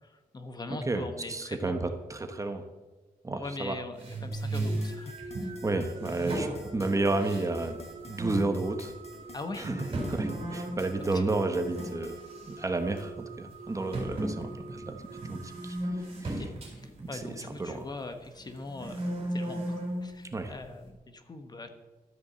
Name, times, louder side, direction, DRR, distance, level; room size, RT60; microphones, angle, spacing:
voice 1, 0.0-1.9 3.3-5.6 6.3-6.5 9.3-9.7 11.1-11.2 16.2-16.5 16.7-21.7, left 2 dB, 25° left, 7 dB, 1.1 m, -42 dB
voice 2, 1.3-2.7 3.2-3.8 5.6-7.8 8.1-8.9 9.6-9.7 10.1-12.2 12.6-14.9 15.3-15.8 17.6-17.8 20.3-20.5, right 2 dB, 20° right, 7 dB, 1.1 m, -31 dB
sound 1, 4.0-5.5 6.0-7.8 8.1-8.5 9.1-9.2 9.6-12.0 12.3-12.6 13.0-13.1 13.9-17.9 18.4-20.1, right 1 dB, 40° right, 4.3 m, -35 dB
sound 2, 4.3-12.2, left 2 dB, 45° left, 3.3 m, -51 dB
sound 3, 4.6-16.6, right 3 dB, 75° right, 2.2 m, -46 dB
13.0 x 8.2 x 7.6 m, 1.2 s
wide cardioid pair, 165°, 15 cm